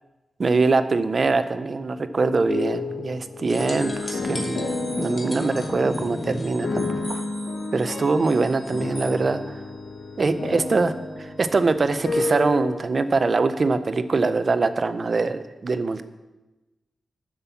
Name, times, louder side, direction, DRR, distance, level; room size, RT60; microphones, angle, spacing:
voice 1, 0.4-7.2 7.7-9.6 10.2-10.9 11.2-16.0, right 3 dB, 45° right, 11 dB, 0.5 m, -23 dB
sound 1, 2.5-12.8, left 3 dB, 80° left, 1.1 m, -31 dB
sound 2, 3.5-9.1 12.1-12.2, left 1 dB, 35° left, 1.6 m, -35 dB
7.5 x 5.9 x 6.9 m, 1.1 s
wide cardioid pair, 130°, 0 cm